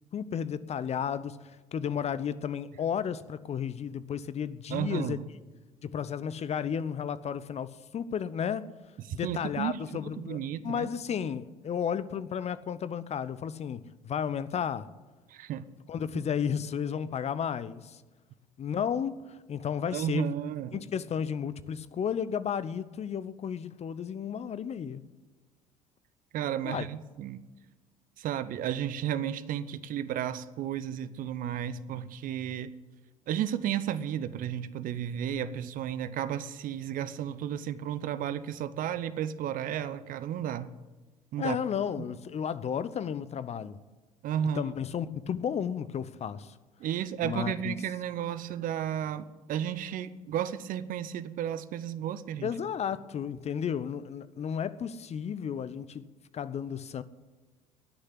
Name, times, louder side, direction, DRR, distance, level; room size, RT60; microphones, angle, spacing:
voice 1, 0.1-5.2 5.8-8.7 9.1-14.9 15.9-18.0 18.6-20.4 20.7-25.0 26.6-26.9 41.4-43.8 44.5-46.6 47.2-47.7 52.4-56.1 56.3-57.0, left 8 dB, 35° left, 0.8 m, -33 dB
voice 2, 4.7-5.2 9.1-9.8 10.2-10.9 15.3-15.7 16.1-16.3 19.9-20.8 26.3-27.4 28.2-32.7 33.3-40.7 41.3-41.6 42.0-42.1 44.2-44.7 46.8-52.5, right 10 dB, 50° right, 0.8 m, -33 dB
19.5 x 6.6 x 9.9 m
figure-of-eight pair, 55°, 18 cm